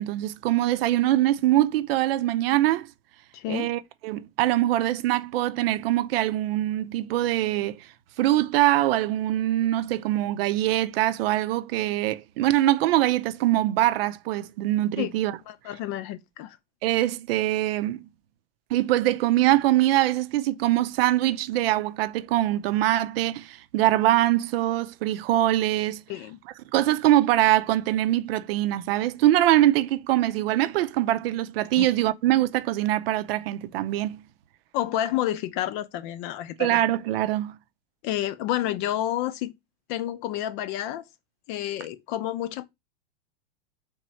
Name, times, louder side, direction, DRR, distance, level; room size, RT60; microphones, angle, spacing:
voice 1, 0.0-2.9 3.5-7.9 8.2-15.4 16.8-18.0 18.7-26.0 26.7-34.2 36.6-37.6, right 14 dB, 70° right, 0.5 m, -23 dB
voice 2, 3.3-3.7 15.0-15.1 15.5-16.6 26.1-26.4 31.8-31.9 34.7-36.8 38.0-39.5 39.9-41.0 41.5-42.6, left 12 dB, 50° left, 0.7 m, -29 dB
3.6 x 3.0 x 4.2 m
hypercardioid pair, 115°, 31 cm